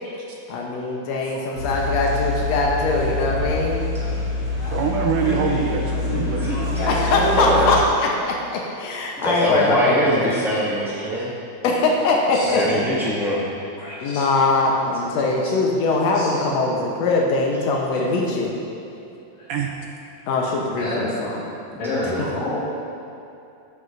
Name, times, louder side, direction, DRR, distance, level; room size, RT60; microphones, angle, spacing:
voice 1, 0.5-3.8 6.9-10.4 11.6-12.6 14.0-18.5 20.3-21.4, left 3 dB, 85° left, -1 dB, 1.5 m, -22 dB
sound 1, 1.5-7.8, left 2 dB, 40° left, 3.1 m, -25 dB
voice 2, 4.7-6.8 14.7-14.9 15.7-15.8 16.3-16.6 18.6-19.0 19.5-19.7 20.8-20.9 21.5-21.6, right 6 dB, 80° right, 1 dB, 1.9 m, -27 dB
voice 3, 7.3-7.7 9.2-11.3 12.4-13.4, equal, ahead, -9 dB, 0.5 m, -23 dB
voice 4, 13.8-14.4 16.1-16.4 19.4-19.5 20.8-21.1 21.8-22.5, left 2 dB, 65° left, -10 dB, 3.2 m, -29 dB
13.5 x 11.0 x 2.6 m, 2.7 s
omnidirectional pair, 4.3 m